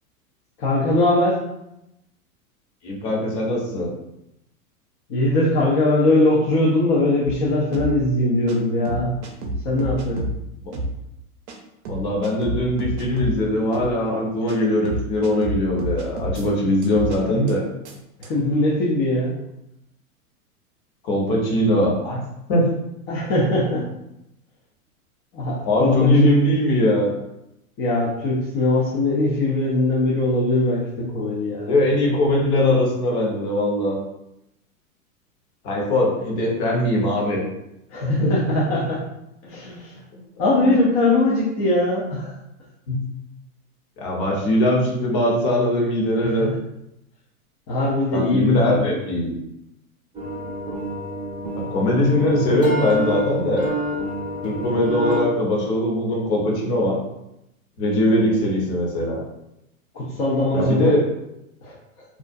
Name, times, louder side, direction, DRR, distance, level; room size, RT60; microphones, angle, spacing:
voice 1, 0.6-1.4 5.1-9.2 9.6-10.2 18.2-19.4 23.1-23.9 25.3-26.3 27.8-31.7 37.9-39.0 39.4-40.0 40.4-42.3 46.2-46.6 47.7-49.0 51.6-51.7 59.9-61.0 61.6-61.8, left 2 dB, 30° left, -5 dB, 0.5 m, -21 dB
voice 2, 2.8-3.9 10.6-10.7 11.9-17.6 21.0-22.2 22.5-22.7 25.7-27.1 31.7-34.0 35.6-37.5 38.0-38.3 40.7-40.8 42.9-43.0 44.0-46.5 48.1-49.3 51.7-53.6 54.4-57.0 57.8-59.2 60.5-61.0, left 1 dB, 50° left, -2 dB, 0.9 m, -21 dB
sound 1, 7.3-7.4 7.7-7.9 8.5-8.6 8.8-10.4 10.7-10.9 11.5-11.6 11.8-13.4 13.7-13.9 14.5-14.6 14.8-16.4 16.8-17.2 17.5-17.6 17.8-17.9 18.2-18.3, right 1 dB, 55° right, 0.6 m, -29 dB
sound 2, 50.1-55.2, right 1 dB, 10° right, 0.7 m, -29 dB
2.4 x 2.1 x 2.5 m, 0.85 s
hypercardioid pair, 120°, 43 cm